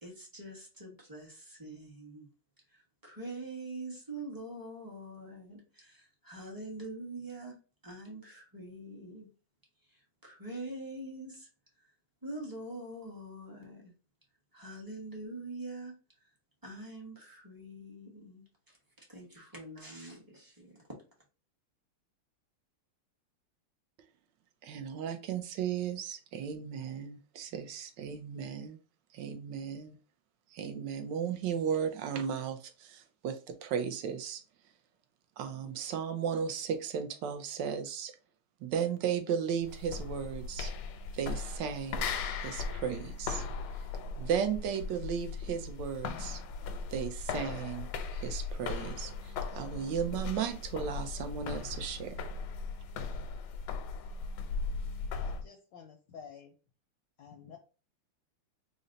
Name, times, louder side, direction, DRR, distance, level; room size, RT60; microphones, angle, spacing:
voice 1, 0.0-2.3 2.7-7.5 7.8-9.3 9.9-11.5 12.2-13.9 14.5-15.9 16.6-18.8 19.1-20.8, right 2 dB, 20° right, 0.5 m, -44 dB
voice 2, 24.6-28.8 29.1-30.0 30.5-34.4 35.4-38.1 38.6-40.7 41.1-42.1 42.4-43.4 44.2-46.4 46.9-47.9 48.1-52.2, right 7 dB, 75° right, 1.1 m, -35 dB
sound 1, 39.6-55.5, left 4 dB, 90° left, 1.5 m, -38 dB
voice 3, 55.2-56.5 57.2-57.6, left 7 dB, 75° left, 1.1 m, -51 dB
3.9 x 2.1 x 3.8 m
omnidirectional pair, 2.3 m